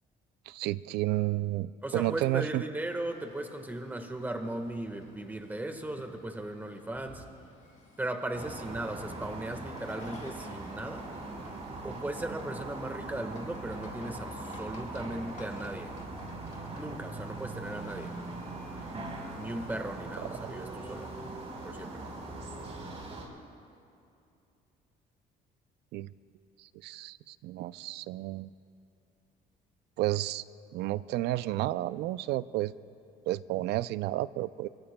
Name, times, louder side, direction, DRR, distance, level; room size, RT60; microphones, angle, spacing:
voice 1, 0.5-2.6 25.9-26.1 26.6-28.5 30.0-30.4 30.7-32.7 33.3-34.7, right 16 dB, 80° right, 17 dB, 0.4 m, -31 dB
voice 2, 1.8-7.2 8.0-11.1 11.8-16.0 16.7-18.1 19.3-21.1 21.6-22.0, right 1 dB, 10° right, 6 dB, 1.4 m, -37 dB
sound 1, 2.7-21.2, left 3 dB, 50° left, 4.6 m, -54 dB
sound 2, 8.3-23.2, right 2 dB, 40° right, 4.1 m, -41 dB
24.5 x 23.0 x 2.2 m, 2.6 s
cardioid pair, 110°, 17 cm